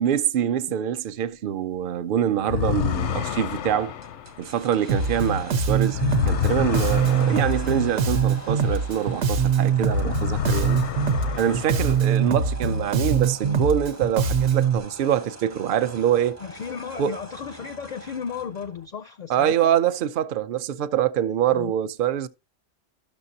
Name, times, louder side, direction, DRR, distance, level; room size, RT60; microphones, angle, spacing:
voice 1, 0.0-3.9 4.4-10.8 11.4-16.4 17.0-17.2 19.3-22.3, right 10 dB, 60° right, 0.7 m, -25 dB
sound 1, 2.4-9.3 9.7-12.4, left 9 dB, 80° left, 0.9 m, -30 dB
sound 2, 4.0-18.9, right 1 dB, 20° right, 0.5 m, -43 dB
Bass guitar, 4.9-14.8, right 5 dB, 90° right, 1.1 m, -23 dB
voice 2, 16.4-19.7 21.5-21.7, left 7 dB, 55° left, 0.5 m, -34 dB
12.5 x 6.5 x 2.7 m
omnidirectional pair, 1.2 m